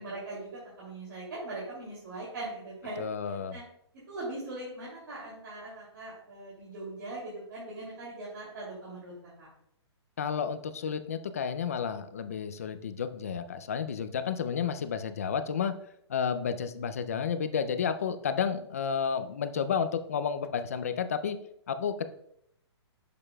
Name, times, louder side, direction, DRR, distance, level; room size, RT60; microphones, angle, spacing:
voice 1, 0.0-3.6 4.1-9.1 9.4-9.5, right 2 dB, 50° right, -6 dB, 2.5 m, -40 dB
voice 2, 3.0-3.6 10.2-15.7 16.1-21.4 21.7-22.1, left 7 dB, 30° left, 11 dB, 0.3 m, -31 dB
8.6 x 6.8 x 2.2 m, 0.72 s
hypercardioid pair, 175°, 15 cm